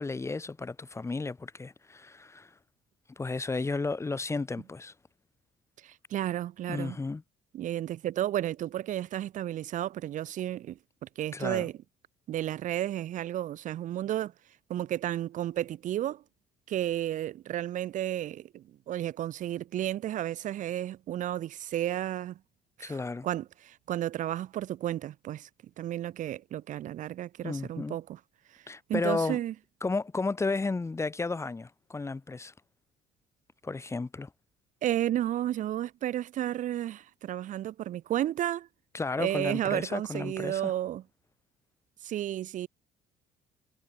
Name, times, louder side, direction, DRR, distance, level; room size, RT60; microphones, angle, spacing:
voice 1, 0.0-2.5 3.2-4.9 6.7-7.2 11.3-11.6 22.8-23.3 27.4-28.0 28.7-29.4 29.8-32.5 33.6-34.3 38.9-40.7, left 3 dB, 15° left, 1.0 m, -33 dB
voice 2, 5.8-7.0 7.5-10.8 11.2-11.7 12.3-14.3 14.7-16.2 16.7-22.4 22.8-23.0 23.2-25.5 25.8-28.2 28.5-28.6 28.9-29.5 34.8-38.7 39.2-41.0 42.0-42.7, right 12 dB, 50° right, 0.5 m, -32 dB
cardioid pair, 110°, 17 cm